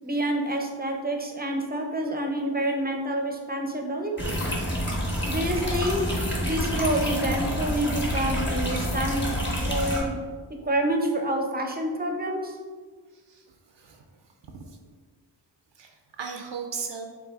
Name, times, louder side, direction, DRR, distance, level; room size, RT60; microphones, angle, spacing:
voice 1, 0.0-4.4 5.2-6.0 6.4-9.3 9.6-10.1 10.6-12.6, right 1 dB, 20° right, 2 dB, 0.7 m, -28 dB
sound 1, 4.2-10.0, equal, 25° left, 1.3 m, -28 dB
voice 2, 13.1-14.0 14.6-14.8 15.8-17.1, right 5 dB, 70° right, 3 dB, 0.6 m, -37 dB
5.7 x 3.7 x 2.4 m, 1.5 s
wide cardioid pair, 55°, 46 cm